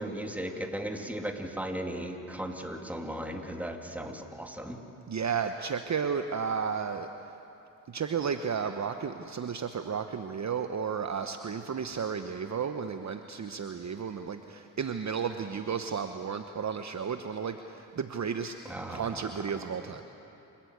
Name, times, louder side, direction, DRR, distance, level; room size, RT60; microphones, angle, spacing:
voice 1, 0.0-4.8 18.7-19.2, right 1 dB, 5° right, 2 dB, 2.9 m, -36 dB
voice 2, 5.1-7.1 7.9-18.5 18.9-20.0, right 6 dB, 40° right, 7 dB, 1.0 m, -33 dB
28.0 x 13.5 x 8.2 m, 2.8 s
supercardioid pair, 50°, 42 cm